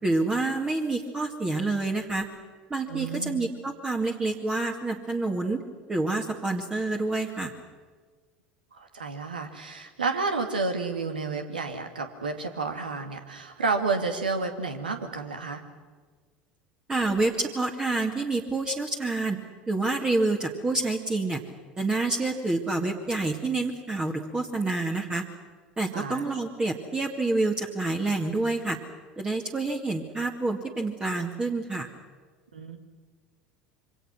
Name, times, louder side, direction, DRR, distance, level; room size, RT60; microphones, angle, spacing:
voice 1, 0.0-2.3 2.7-5.6 5.9-7.5 16.9-19.4 19.7-21.4 21.8-25.2 25.8-28.8 29.2-31.9, right 2 dB, 15° right, 2 dB, 2.1 m, -28 dB
voice 2, 2.9-3.5 8.7-15.6 25.9-26.2 32.5-32.8, right 4 dB, 80° right, 6 dB, 2.2 m, -31 dB
26.5 x 24.5 x 6.2 m, 1.5 s
figure-of-eight pair, 70°, 5 cm